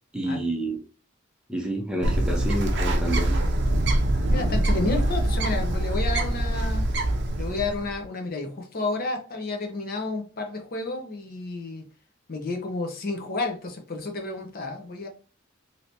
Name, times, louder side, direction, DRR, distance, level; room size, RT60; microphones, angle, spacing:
voice 1, 0.1-0.8 1.5-3.3, right 1 dB, 5° right, 1 dB, 0.5 m, -29 dB
Bird, 2.0-8.0, right 1 dB, 60° right, 0.5 m, -24 dB
voice 2, 4.3-6.9 7.4-11.9 12.3-15.1, left 3 dB, 45° left, 4 dB, 0.7 m, -31 dB
3.2 x 2.8 x 2.7 m, 0.37 s
head